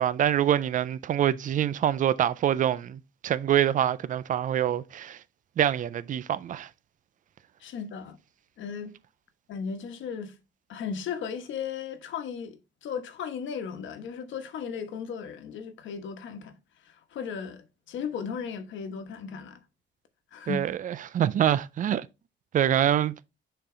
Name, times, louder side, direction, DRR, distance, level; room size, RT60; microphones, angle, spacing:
voice 1, 0.0-5.2 5.6-6.7 20.5-22.1 22.5-23.1, right 10 dB, 40° right, 0.4 m, -25 dB
voice 2, 7.6-8.2 8.6-8.9 9.5-10.3 10.7-16.5 16.8-19.6 20.3-20.7, left 6 dB, 75° left, 1.2 m, -36 dB
7.0 x 3.9 x 3.8 m
cardioid pair, 130°, 20 cm